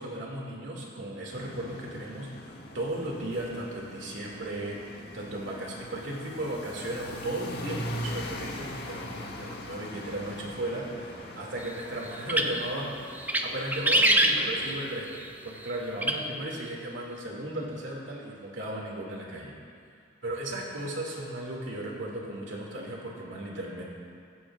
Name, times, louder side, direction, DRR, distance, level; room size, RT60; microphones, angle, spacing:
voice 1, 0.0-19.5 20.2-23.8, right 1 dB, 75° right, -2 dB, 2.6 m, -36 dB
sound 1, 1.3-14.8, left 1 dB, 55° left, 1.1 m, -41 dB
sound 2, 12.1-12.7 13.1-13.5 13.7-14.8 16.0-16.2, right 1 dB, 10° right, 0.6 m, -23 dB
15.5 x 15.0 x 2.6 m, 2.3 s
head